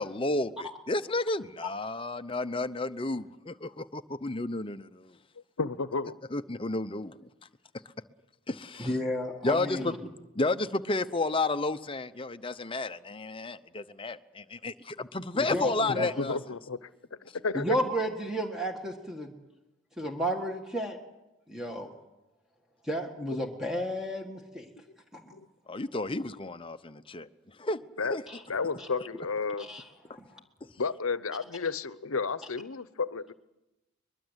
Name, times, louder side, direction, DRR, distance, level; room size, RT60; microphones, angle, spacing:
voice 1, 0.0-5.2 6.3-7.2 8.5-8.9 9.4-9.9 10.4-16.4 25.7-27.3 27.6-27.8 28.1-28.2, left 2 dB, 25° left, 10 dB, 0.8 m, -31 dB
voice 2, 5.6-6.2 16.0-17.8 25.3-25.5 28.0-28.2 28.5-29.7 30.8-33.3, left 4 dB, 75° left, 15 dB, 0.9 m, -32 dB
voice 3, 8.8-10.0 15.3-16.1 17.5-19.3 20.0-21.0 21.5-21.9 22.8-24.7 25.1-25.3 28.3-28.4 28.8-28.9 29.6-30.3, equal, 5° right, 2 dB, 1.7 m, -33 dB
23.5 x 22.0 x 8.1 m, 0.99 s
head